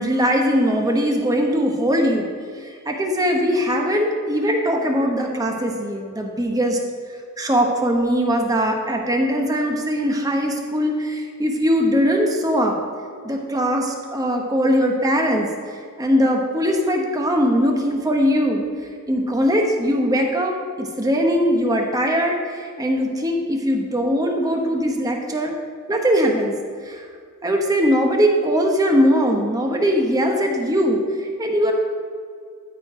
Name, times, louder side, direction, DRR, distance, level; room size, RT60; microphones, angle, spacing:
voice 1, 0.0-2.3 2.5-6.8 7.4-12.7 13.2-15.5 16.0-18.6 19.1-25.5 25.9-26.5 26.8-27.1 27.4-31.7, equal, 15° right, 1 dB, 1.0 m, -20 dB
13.5 x 4.6 x 4.9 m, 2.1 s
head